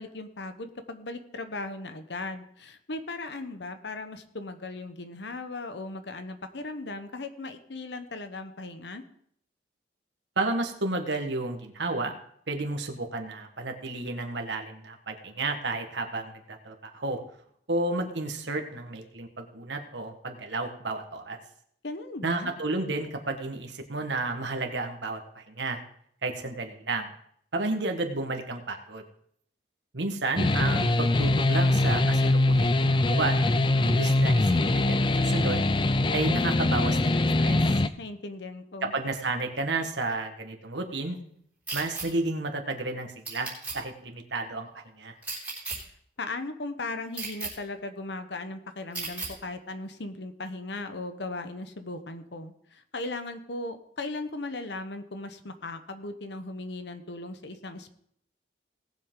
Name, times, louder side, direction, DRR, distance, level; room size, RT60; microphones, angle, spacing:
voice 1, 0.0-9.0 21.8-22.5 38.0-38.9 46.2-57.9, left 2 dB, 75° left, 8 dB, 1.0 m, -37 dB
voice 2, 10.4-12.1 12.5-17.2 17.7-21.4 22.2-25.8 26.2-27.1 27.5-29.0 29.9-33.4 33.8-35.7 36.1-37.8 38.8-41.2 41.7-44.7 44.9-45.1, right 2 dB, 80° right, 4 dB, 1.6 m, -32 dB
sound 1, 30.4-37.9, left 2 dB, 25° left, 0.4 m, -23 dB
sound 2, 41.7-42.1 43.2-43.8 45.2-45.8 47.1-47.5 48.9-49.3, right 3 dB, 10° right, 3.6 m, -34 dB
18.5 x 7.6 x 3.8 m, 0.67 s
head